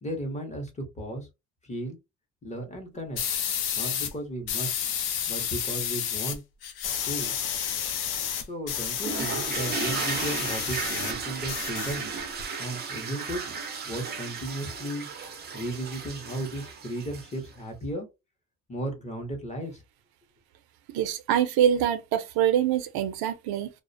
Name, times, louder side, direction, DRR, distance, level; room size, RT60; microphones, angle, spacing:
voice 1, 0.0-1.3 1.6-2.0 2.4-3.2 3.8-4.8 5.3-6.4 7.1-7.4 8.3-12.0 12.6-13.4 13.8-15.1 15.5-18.1 18.7-19.8, right 1 dB, 20° left, 0.6 m, -35 dB
sound 1, 3.2-4.1 4.5-6.4 6.6-11.1 11.4-12.4, left 9 dB, 90° left, 0.6 m, -31 dB
sound 2, 9.0-17.5, right 5 dB, 30° right, 0.4 m, -34 dB
voice 2, 20.9-23.7, right 10 dB, 80° right, 0.5 m, -24 dB
2.4 x 2.0 x 2.5 m
cardioid pair, 155°, 36 cm